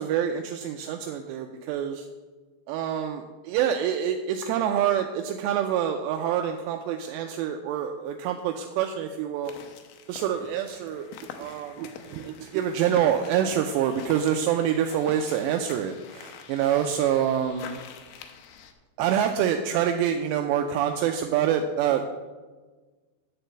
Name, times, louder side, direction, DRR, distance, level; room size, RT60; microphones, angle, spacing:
voice 1, 0.0-2.1 2.7-9.5 10.1-11.1 11.4-17.8 19.0-22.1, right 9 dB, 85° right, 4 dB, 2.7 m, -26 dB
sound 1, 9.4-18.7, left 7 dB, 80° left, 2.3 m, -45 dB
11.5 x 4.1 x 7.8 m, 1.3 s
omnidirectional pair, 5.1 m